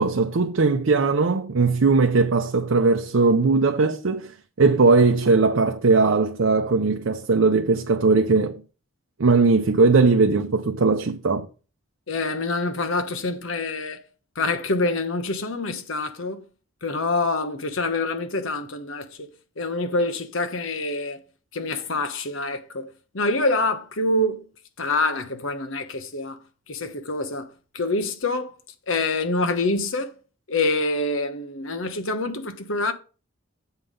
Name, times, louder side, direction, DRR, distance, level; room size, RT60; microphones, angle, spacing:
voice 1, 0.0-8.6 9.2-11.5, right 4 dB, 70° right, 0.6 m, -19 dB
voice 2, 12.1-14.0 14.4-16.4 16.8-19.3 19.6-21.2 21.5-22.9 23.1-24.5 24.8-26.4 26.7-28.5 28.9-30.1 30.5-32.9, left 2 dB, 75° left, 1.1 m, -26 dB
8.1 x 5.5 x 5.2 m
head